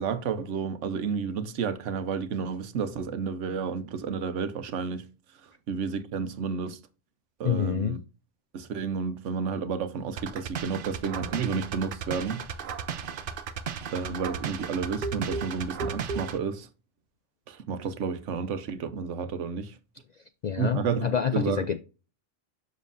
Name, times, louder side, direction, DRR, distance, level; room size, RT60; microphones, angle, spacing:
voice 1, 0.0-5.0 5.7-6.8 7.4-8.0 8.5-12.7 13.9-16.7 17.5-19.7 20.6-21.7, right 6 dB, 80° right, 1.1 m, -31 dB
voice 2, 7.4-8.0 20.4-21.8, left 7 dB, 65° left, 0.4 m, -27 dB
sound 1, 10.2-16.4, right 6 dB, 55° right, 0.7 m, -35 dB
7.2 x 6.5 x 2.6 m
omnidirectional pair, 1.2 m